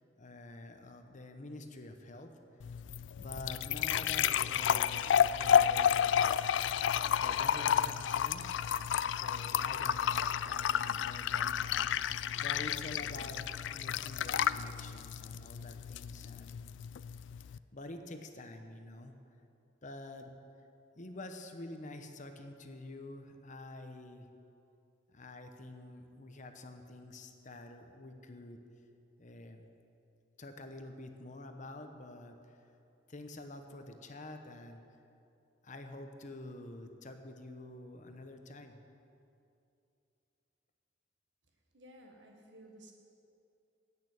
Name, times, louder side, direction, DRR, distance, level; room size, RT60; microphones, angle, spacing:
voice 1, 0.2-2.3 3.1-6.1 7.1-8.6 9.1-11.9 12.4-13.4 13.7-16.6 17.7-19.1 19.8-20.3 21.0-24.3 25.1-28.6 29.2-29.7 30.4-32.7 33.1-34.8 35.6-38.8, left 2 dB, 45° left, 6 dB, 0.9 m, -48 dB
sound 1, 2.6-17.6, left 9 dB, 75° left, 0.3 m, -31 dB
voice 2, 41.7-42.9, right 1 dB, 70° right, 2 dB, 1.7 m, -55 dB
10.5 x 8.7 x 8.6 m, 2.6 s
head